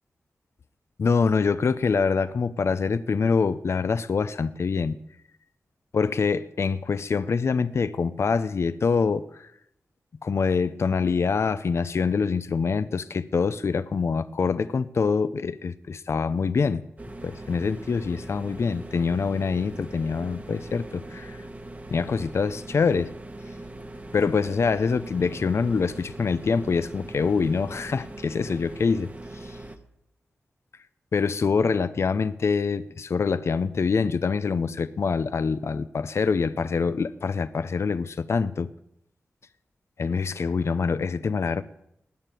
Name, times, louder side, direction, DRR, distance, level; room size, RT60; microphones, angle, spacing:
voice 1, 1.0-5.0 5.9-9.5 10.2-16.8 17.2-21.4 21.9-23.1 24.1-29.6 31.1-38.7 40.0-41.6, left 5 dB, 65° left, 0.7 m, -25 dB
sound 1, 17.0-29.8, right 1 dB, 30° right, 1.5 m, -41 dB
19.5 x 6.7 x 9.2 m
cardioid pair, 60°, 5 cm